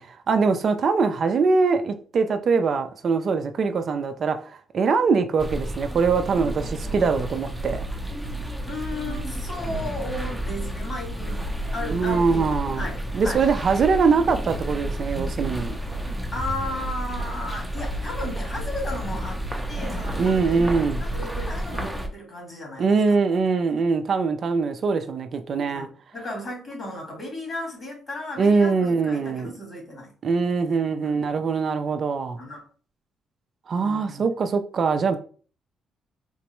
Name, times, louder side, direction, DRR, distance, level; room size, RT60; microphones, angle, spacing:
voice 1, 0.0-7.8 11.9-12.9 13.1-15.8 20.2-21.0 22.8-25.9 28.4-29.5 30.2-32.4 33.7-35.2, right 4 dB, 50° right, 0.4 m, -22 dB
sound 1, 5.4-22.1, right 1 dB, 5° right, 0.6 m, -31 dB
voice 2, 8.7-13.0 13.2-13.4 16.3-20.6 21.0-23.0 25.7-30.1 31.0-31.2 32.4-32.6 33.8-34.3, left 2 dB, 35° left, 1.6 m, -35 dB
3.8 x 2.1 x 3.0 m
cardioid pair, 90°, 0 cm